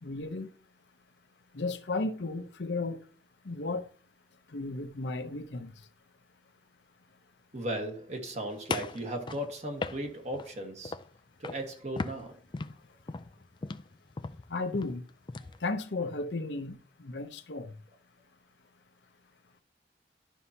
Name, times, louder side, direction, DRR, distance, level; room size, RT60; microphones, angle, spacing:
voice 1, 0.0-0.5 1.5-3.0 3.4-3.9 4.5-5.9 14.5-15.0 15.6-17.8, left 3 dB, 75° left, 0.8 m, -34 dB
voice 2, 7.5-10.9 11.4-12.4, right 1 dB, 40° right, 1.4 m, -36 dB
sound 1, 8.7-10.5 10.8-11.2 11.4-11.7 12.0-15.6, left 3 dB, 25° left, 0.3 m, -37 dB
11.5 x 5.5 x 2.8 m
head